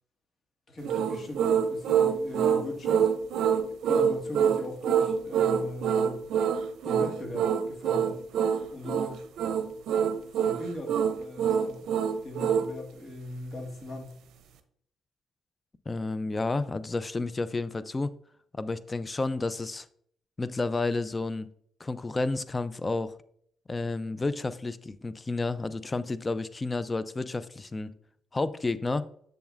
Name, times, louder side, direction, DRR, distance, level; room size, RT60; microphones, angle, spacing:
voice 1, 0.7-3.1 3.7-6.2 6.8-8.2 8.7-9.2 10.3-11.9 12.2-14.2, left 1 dB, 40° left, 2 dB, 1.7 m, -40 dB
Choral Chant, 0.8-12.7, right 7 dB, 75° right, 0.6 m, -26 dB
voice 2, 15.9-18.1 18.6-19.9 20.4-21.5 21.8-23.1 23.7-27.9 28.3-29.1, left 3 dB, 25° left, 15 dB, 0.4 m, -31 dB
7.1 x 6.9 x 2.5 m, 0.65 s
cardioid pair, 90°, 0 cm